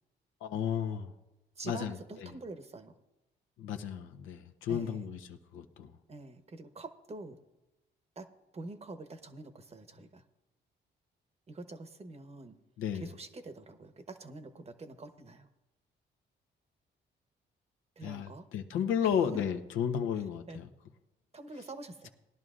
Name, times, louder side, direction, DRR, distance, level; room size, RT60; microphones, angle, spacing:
voice 1, 0.4-1.1 1.6-2.3 3.6-5.9 12.8-13.1 18.0-20.7, left 8 dB, 90° left, 7 dB, 0.9 m, -33 dB
voice 2, 1.6-2.9 4.7-5.1 6.1-7.4 8.2-8.3 8.5-10.2 11.5-12.6 12.9-15.5 18.0-18.5 20.5-20.6 21.3-22.1, right 2 dB, 30° right, 9 dB, 1.0 m, -46 dB
19.0 x 11.0 x 2.5 m, 0.96 s
cardioid pair, 90°, 20 cm